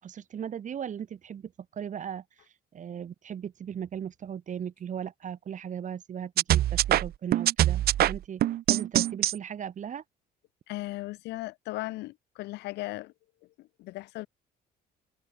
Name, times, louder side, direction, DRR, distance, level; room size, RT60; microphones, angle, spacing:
voice 1, 0.0-2.2 2.7-8.4 8.7-10.0, right 8 dB, 45° right, 7.3 m, -37 dB
sound 1, 6.4-9.4, right 13 dB, 65° right, 1.6 m, -24 dB
voice 2, 10.7-13.1 13.6-14.3, left 19 dB, 85° left, 5.1 m, -37 dB
cardioid pair, 110°, 17 cm